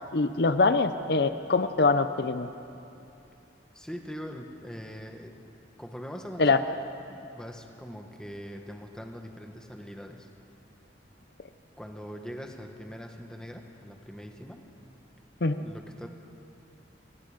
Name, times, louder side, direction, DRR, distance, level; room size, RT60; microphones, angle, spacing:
voice 1, 0.1-2.5 6.4-6.6 15.4-15.7, left 3 dB, 60° left, 10 dB, 0.7 m, -24 dB
voice 2, 3.7-5.4 5.8-6.8 7.1-10.3 11.8-14.6 15.6-16.1, equal, 5° left, 3 dB, 1.5 m, -42 dB
28.0 x 23.5 x 5.2 m, 2.7 s
head